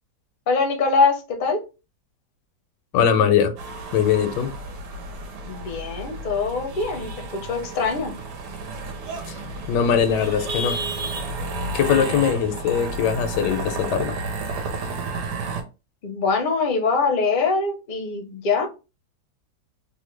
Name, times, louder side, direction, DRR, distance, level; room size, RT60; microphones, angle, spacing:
voice 1, 0.5-1.6 5.5-8.2 16.0-18.7, left 4 dB, 60° left, 0.5 m, -23 dB
voice 2, 2.9-3.5 3.9-4.5 9.3-9.4 9.7-10.8 11.7-14.1, left 8 dB, 90° left, 1.2 m, -21 dB
sound 1, 3.6-15.6, right 2 dB, 75° right, 1.4 m, -31 dB
3.3 x 2.1 x 3.2 m
omnidirectional pair, 1.8 m